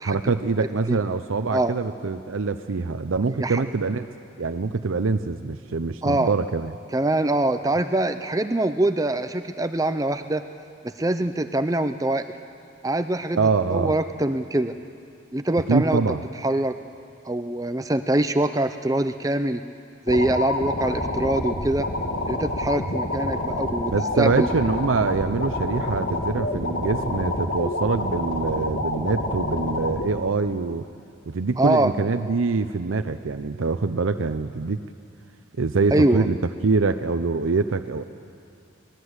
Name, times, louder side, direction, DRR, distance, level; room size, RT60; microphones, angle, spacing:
voice 1, 0.0-4.1 4.4-6.7 13.4-13.9 15.7-16.2 23.9-30.9 31.3-34.8 35.6-36.4 36.6-38.0, right 4 dB, 90° right, 9 dB, 0.6 m, -24 dB
voice 2, 0.6-1.0 1.5-1.7 3.4-3.6 6.0-6.3 6.9-10.4 10.8-12.3 12.8-13.4 13.7-14.8 15.3-16.0 16.4-16.8 17.2-19.6 20.1-21.9 22.3-24.5 31.6-31.9 35.9-36.2, right 1 dB, 15° right, 9 dB, 0.5 m, -23 dB
sound 1, 20.1-30.1, left 1 dB, 70° left, 1.9 m, -28 dB
22.5 x 19.0 x 8.1 m, 2.5 s
head